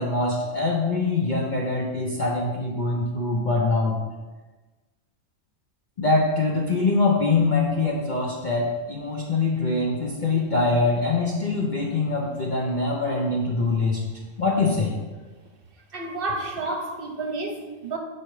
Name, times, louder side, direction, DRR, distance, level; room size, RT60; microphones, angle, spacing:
voice 1, 0.0-4.0 6.0-14.0 14.4-15.0, left 3 dB, 40° left, -3 dB, 0.9 m, -23 dB
voice 2, 15.9-18.0, right 2 dB, 50° right, 2 dB, 1.0 m, -30 dB
7.9 x 4.5 x 4.7 m, 1.2 s
omnidirectional pair, 1.3 m